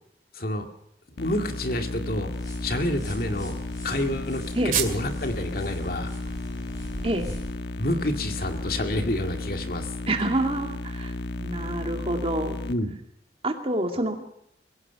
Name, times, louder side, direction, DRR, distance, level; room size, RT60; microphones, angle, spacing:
voice 1, 0.3-0.7 1.2-2.3 2.6-3.6 3.8-6.1 7.8-9.9 12.7-12.9, left 1 dB, 55° left, 5 dB, 2.2 m, -28 dB
sound 1, 1.2-12.7, left 2 dB, 70° left, 1.3 m, -34 dB
sound 2, 2.3-7.5, equal, 20° left, 6.6 m, -42 dB
sound 3, 4.7-5.2 5.6-5.7 6.1-10.7, right 9 dB, 50° right, 2.3 m, -36 dB
voice 2, 10.1-12.6 13.4-14.2, right 1 dB, 35° right, 5 dB, 2.3 m, -27 dB
23.0 x 17.0 x 7.0 m, 0.77 s
head